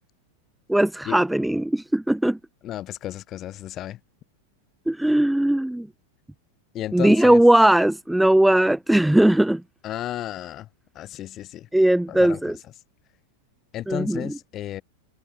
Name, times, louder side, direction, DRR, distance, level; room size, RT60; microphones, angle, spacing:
voice 1, 0.7-2.4 4.9-5.9 6.9-9.6 11.7-12.6 13.9-14.3, right 1 dB, 5° right, 0.4 m, -19 dB
voice 2, 2.6-4.0 6.7-7.4 9.8-10.7 10.9-11.7 12.1-12.6 13.7-14.8, left 13 dB, 30° left, 1.7 m, -33 dB
figure-of-eight pair, 90°, 0 cm